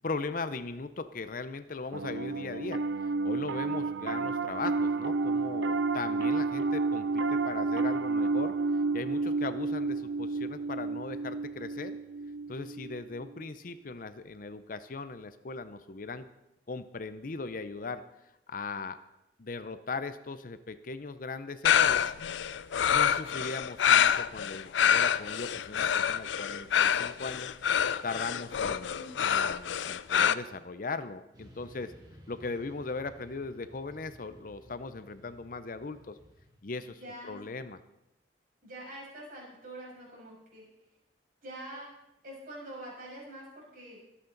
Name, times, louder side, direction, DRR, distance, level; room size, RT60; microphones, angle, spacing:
voice 1, 0.0-8.5 8.9-12.0 12.5-16.2 16.7-18.0 18.5-19.0 19.4-22.0 22.9-27.5 28.0-31.9 32.3-36.2 36.6-37.8, left 3 dB, 50° left, 12 dB, 0.6 m, -38 dB
Piano, 1.9-13.4, right 3 dB, 75° right, 0.5 m, -31 dB
sound 1, 21.6-30.3, left 8 dB, 85° left, 0.4 m, -26 dB
voice 2, 28.8-29.2 37.0-37.4 38.6-40.7 41.4-41.9 42.2-44.0, right 1 dB, 50° right, -4 dB, 6.4 m, -45 dB
Motorcycle / Traffic noise roadway noise, 31.3-36.6, equal, 20° right, 2.0 m, -55 dB
24.0 x 8.5 x 3.9 m, 0.91 s
head